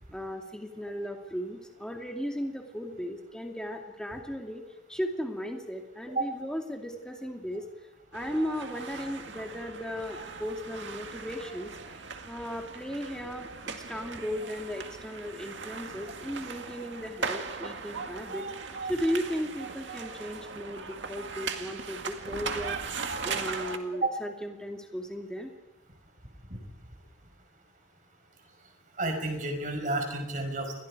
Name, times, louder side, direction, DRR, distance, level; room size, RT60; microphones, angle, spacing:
voice 1, 0.1-4.6 4.9-7.7 8.1-11.7 12.2-18.5 18.9-22.8 23.2-25.5, equal, 5° left, 2 dB, 2.5 m, -36 dB
sound 1, 8.1-23.8, right 4 dB, 80° right, 2.0 m, -38 dB
voice 2, 29.0-30.7, right 2 dB, 45° right, 4 dB, 5.2 m, -30 dB
29.0 x 22.5 x 4.9 m, 0.98 s
head